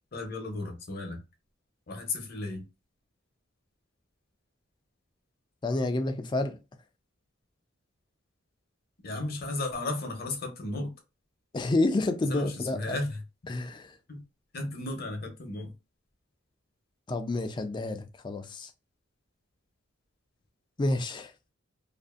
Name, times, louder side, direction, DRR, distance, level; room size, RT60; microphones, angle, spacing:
voice 1, 0.1-1.2 1.9-2.6 9.0-10.9 12.3-13.2 14.1-14.2 14.5-15.7, left 2 dB, 50° left, 0.7 m, -34 dB
voice 2, 5.6-6.6 11.5-13.0 13.5-14.0 17.1-18.7 20.8-21.3, left 2 dB, 25° left, 0.3 m, -29 dB
2.5 x 2.5 x 2.3 m
head